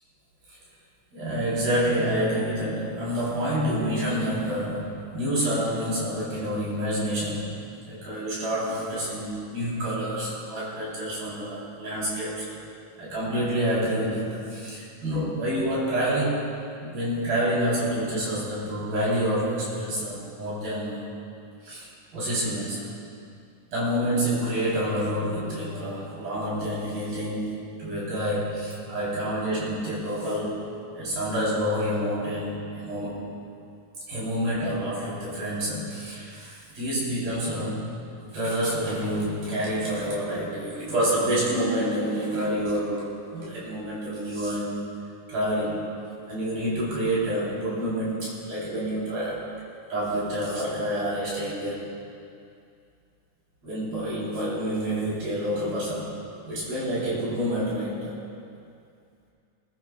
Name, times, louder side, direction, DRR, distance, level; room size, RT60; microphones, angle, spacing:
voice 1, 1.1-7.5 7.9-12.6 13.0-16.5 16.8-21.1 21.6-21.9 22.1-22.9 23.7-30.6 30.9-33.3 34.1-37.9 38.3-44.9 45.3-45.9 46.3-49.5 49.9-52.0 53.6-56.1 56.4-58.2, equal, 75° right, -8 dB, 5.7 m, -28 dB
21.5 x 20.5 x 2.5 m, 2.5 s
omnidirectional pair, 4.2 m